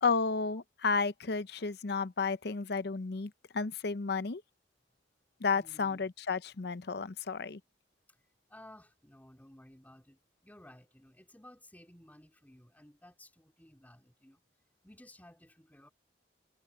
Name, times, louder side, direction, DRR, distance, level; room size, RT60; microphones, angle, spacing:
voice 1, 0.0-4.4 5.4-7.6, left 4 dB, 65° left, 0.7 m, -32 dB
voice 2, 5.5-6.0 8.5-14.4 14.8-15.9, left 1 dB, 10° left, 2.9 m, -56 dB
head